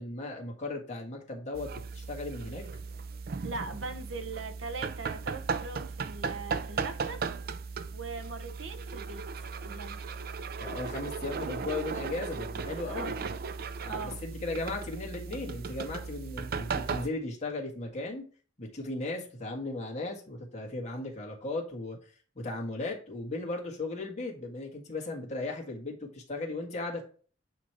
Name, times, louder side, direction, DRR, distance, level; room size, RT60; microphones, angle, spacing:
voice 1, 0.0-2.6 10.6-13.2 13.8-18.2 18.6-27.0, left 2 dB, 35° left, 1.7 m, -36 dB
sound 1, 1.5-17.1, right 5 dB, 50° right, 0.4 m, -36 dB
voice 2, 3.4-7.2 7.9-10.0 12.8-13.1 13.8-14.3, right 3 dB, 80° right, 1.0 m, -40 dB
8.3 x 3.1 x 4.5 m
head